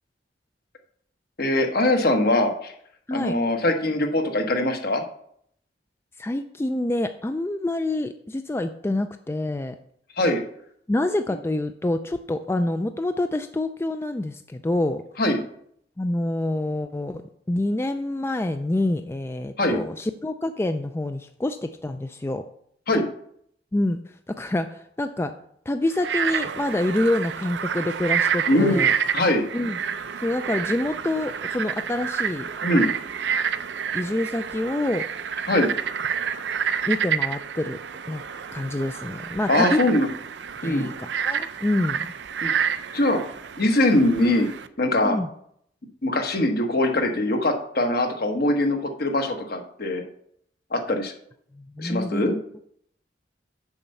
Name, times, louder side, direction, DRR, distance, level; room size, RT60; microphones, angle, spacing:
voice 1, 1.4-2.7 3.1-5.0 10.1-10.4 15.2-15.4 19.6-19.8 22.9-23.1 28.5-28.8 29.1-29.4 32.6-32.9 35.5-35.7 39.5-40.1 40.6-40.9 42.4-42.7 42.9-43.3 43.6-44.5 44.8-45.2 46.0-50.0 50.7-51.1 51.8-52.4, left 1 dB, 60° left, 4 dB, 1.2 m, -22 dB
voice 2, 6.2-9.8 10.9-15.0 16.0-17.2 17.5-22.4 23.7-24.0 24.3-25.3 25.7-28.9 29.5-29.8 30.2-32.5 33.9-35.0 36.9-37.8 38.1-38.2 38.5-39.8 40.6-42.0 45.0-45.3 51.5-52.3, left 1 dB, 15° left, 8 dB, 0.3 m, -26 dB
Frog, 25.9-44.7, right 7 dB, 85° right, 0.5 m, -29 dB
7.1 x 5.3 x 6.9 m, 0.68 s
head